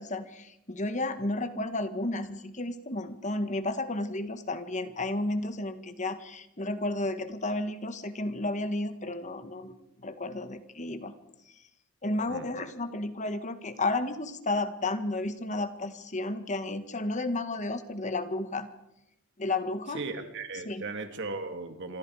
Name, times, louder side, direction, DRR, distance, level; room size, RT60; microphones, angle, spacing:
voice 1, 0.0-11.1 11.5-11.6 12.0-18.7 19.4-20.0 20.6-20.8, left 2 dB, 35° left, 10 dB, 1.6 m, -32 dB
voice 2, 19.9-22.0, right 3 dB, 55° right, 6 dB, 2.8 m, -37 dB
27.5 x 24.0 x 4.9 m, 0.85 s
head